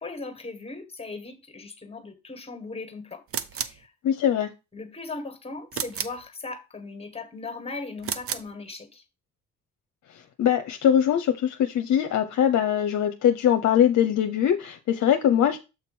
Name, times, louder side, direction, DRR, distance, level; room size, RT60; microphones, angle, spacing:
voice 1, 0.0-3.2 3.5-3.9 4.7-9.0, left 3 dB, 20° left, 1.6 m, -38 dB
sound 1, 3.3-3.8 5.7-6.2 8.0-8.5, right 8 dB, 50° right, 0.7 m, -32 dB
voice 2, 4.0-4.5 10.4-15.6, left 9 dB, 65° left, 0.7 m, -22 dB
7.5 x 3.0 x 6.0 m
cardioid pair, 90°, 30 cm